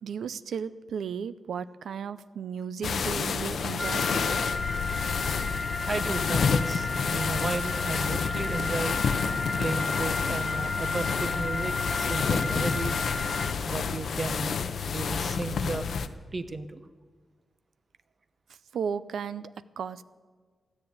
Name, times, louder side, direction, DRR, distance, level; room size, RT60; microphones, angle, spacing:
voice 1, 0.0-4.7 18.7-20.0, right 7 dB, 80° right, 15 dB, 0.5 m, -35 dB
sound 1, 2.8-16.1, left 6 dB, 60° left, 0.7 m, -29 dB
sound 2, 3.8-13.5, left 3 dB, 10° left, 0.8 m, -33 dB
voice 2, 5.9-9.0 9.6-13.1 13.7-14.6 14.9-15.9 16.3-16.8, right 3 dB, 30° right, 12 dB, 0.8 m, -34 dB
13.5 x 9.7 x 9.3 m, 1.5 s
wide cardioid pair, 160°, 0 cm